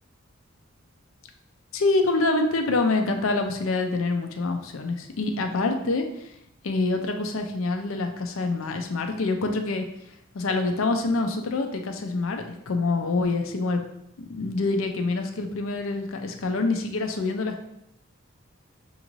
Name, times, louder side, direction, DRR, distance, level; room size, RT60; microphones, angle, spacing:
voice 1, 1.7-6.3 6.6-9.9 10.3-13.8 14.2-17.6, left 3 dB, 80° left, 5 dB, 0.5 m, -26 dB
6.1 x 2.5 x 3.1 m, 0.79 s
head